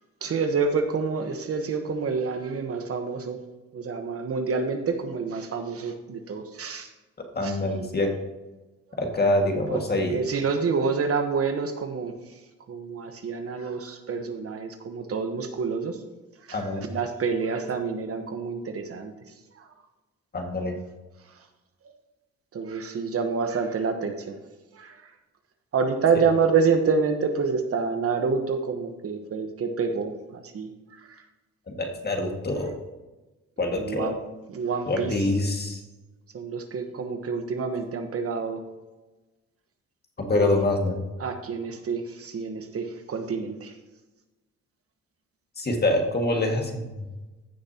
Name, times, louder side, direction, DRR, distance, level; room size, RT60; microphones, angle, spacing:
voice 1, 0.2-3.4 3.7-6.9 7.4-7.6 9.7-9.8 10.1-12.2 12.7-16.0 16.5-16.6 16.9-19.1 22.5-24.4 24.8-24.9 25.7-30.7 33.7-34.2 34.5-35.1 36.3-38.6 40.4-40.6 41.2-43.7, right 5 dB, 50° right, 6 dB, 1.2 m, -27 dB
voice 2, 7.3-8.1 9.0-10.2 16.5-16.9 20.3-20.7 31.7-32.8 33.6-34.2 34.9-35.8 40.2-41.0 45.6-46.9, left 2 dB, 35° left, 2 dB, 2.0 m, -25 dB
15.5 x 6.6 x 2.9 m, 1.1 s
cardioid pair, 90°, 30 cm